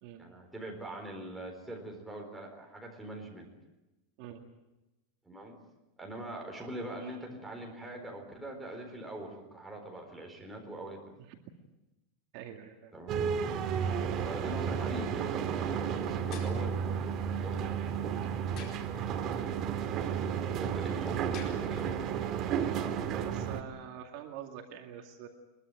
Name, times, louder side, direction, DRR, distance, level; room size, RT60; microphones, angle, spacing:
voice 1, 0.2-3.5 5.3-5.6 6.0-11.1 12.9-13.2 14.2-18.0 20.5-22.0, right 1 dB, ahead, 0 dB, 4.3 m, -43 dB
voice 2, 12.3-12.9 13.8-14.0 18.6-18.8 23.0-25.3, right 9 dB, 45° right, 3 dB, 2.3 m, -45 dB
sound 1, 13.1-23.6, right 7 dB, 30° right, 1.9 m, -32 dB
sound 2, 15.9-22.4, left 5 dB, 30° left, 4.6 m, -53 dB
23.0 x 22.5 x 9.2 m, 0.99 s
supercardioid pair, 180°, 0 cm